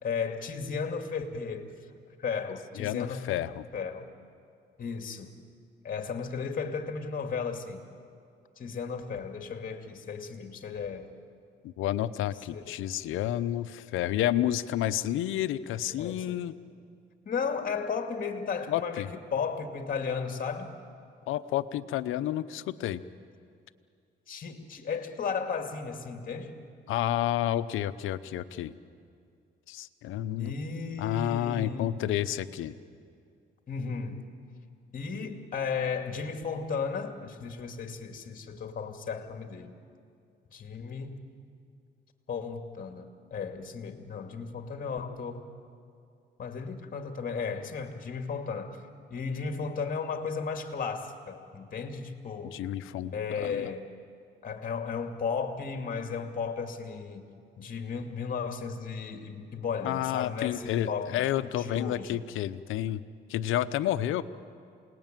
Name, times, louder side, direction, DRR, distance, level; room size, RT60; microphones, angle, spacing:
voice 1, 0.0-1.7 2.2-3.3 3.7-4.1 4.8-5.3 5.8-7.8 8.6-11.1 12.5-12.8 16.0-16.4 17.3-20.7 24.3-26.5 30.4-31.9 33.7-34.2 34.9-39.7 40.5-41.2 42.3-45.5 46.4-48.8 49.1-52.6 53.1-53.9 54.4-62.2, left 5 dB, 45° left, 5 dB, 2.4 m, -35 dB
voice 2, 2.8-3.7 11.6-16.5 18.7-19.1 21.3-23.0 26.9-28.7 29.7-30.5 31.0-32.7 52.5-53.6 59.8-63.0 63.3-64.2, left 12 dB, 90° left, 13 dB, 0.8 m, -30 dB
28.0 x 19.0 x 9.1 m, 2.4 s
cardioid pair, 90°, 20 cm